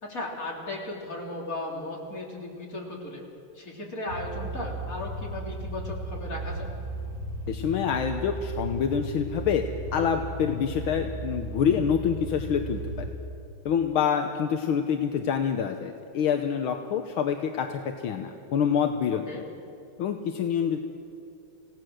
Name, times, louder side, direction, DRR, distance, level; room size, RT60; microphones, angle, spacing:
voice 1, 0.0-3.2 3.6-6.7 19.3-19.4, left 2 dB, 40° left, -2 dB, 3.7 m, -36 dB
sound 1, 4.1-13.1, right 2 dB, 65° right, 5.4 m, -35 dB
voice 2, 7.5-13.1 13.7-19.4 20.0-20.8, left 7 dB, 75° left, 5 dB, 1.7 m, -27 dB
27.5 x 17.5 x 6.4 m, 2.6 s
omnidirectional pair, 2.3 m